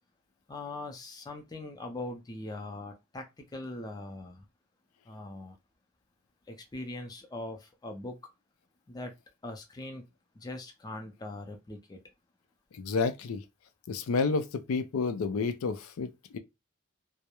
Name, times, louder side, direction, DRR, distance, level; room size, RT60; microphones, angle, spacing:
voice 1, 0.5-4.4 5.1-5.6 6.5-8.2 8.9-9.1 9.4-10.1 10.4-12.0, left 2 dB, 20° left, 0.4 m, -41 dB
voice 2, 12.7-13.4 13.9-16.4, left 4 dB, 80° left, 0.4 m, -30 dB
2.2 x 2.0 x 2.9 m
head